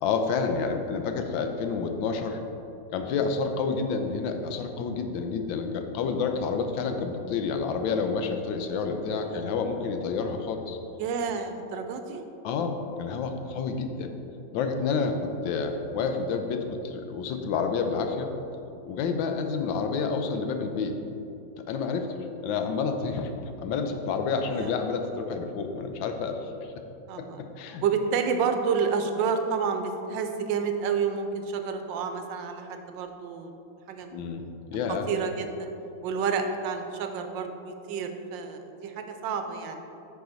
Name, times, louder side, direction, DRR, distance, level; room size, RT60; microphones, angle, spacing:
voice 1, 0.0-2.4 2.9-10.8 12.4-14.1 14.5-18.3 18.9-21.0 21.7-22.2 22.4-23.3 23.6-26.7 27.2-27.8 34.1-35.1, left 5 dB, 85° left, 6 dB, 1.4 m, -29 dB
voice 2, 11.0-12.2 13.4-13.7 24.5-24.7 27.1-27.4 27.8-33.5 33.9-34.2 35.1-35.7 36.0-39.8, right 6 dB, 75° right, 6 dB, 1.3 m, -30 dB
9.3 x 4.7 x 3.9 m, 2.8 s
omnidirectional pair, 2.1 m